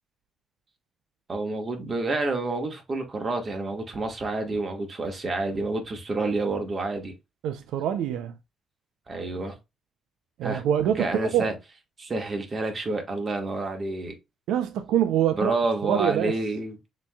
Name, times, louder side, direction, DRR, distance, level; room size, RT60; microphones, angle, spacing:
voice 1, 1.3-7.1 9.1-9.5 10.4-10.6 11.0-11.5 12.0-14.1 15.3-16.8, right 2 dB, 35° right, 1.4 m, -29 dB
voice 2, 7.4-8.3 10.4-11.5 14.5-15.5 15.8-16.3, right 10 dB, 90° right, 0.4 m, -25 dB
6.8 x 3.0 x 2.3 m
cardioid pair, 90°, 0 cm